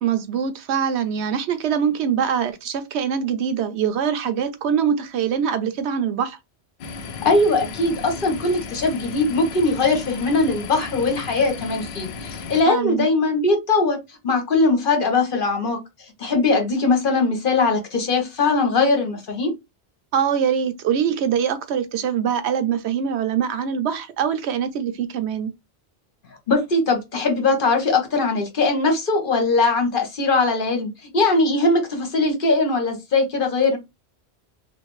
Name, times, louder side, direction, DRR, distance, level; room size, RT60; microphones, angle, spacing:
voice 1, 0.0-6.4 12.7-13.1 20.1-25.5, right 8 dB, 85° right, 0.9 m, -23 dB
sound 1, 6.8-12.6, left 4 dB, 75° left, 0.8 m, -35 dB
voice 2, 7.2-14.0 14.2-15.8 16.2-19.5 26.5-33.8, left 3 dB, 55° left, 1.0 m, -20 dB
3.2 x 2.6 x 3.0 m
omnidirectional pair, 1.1 m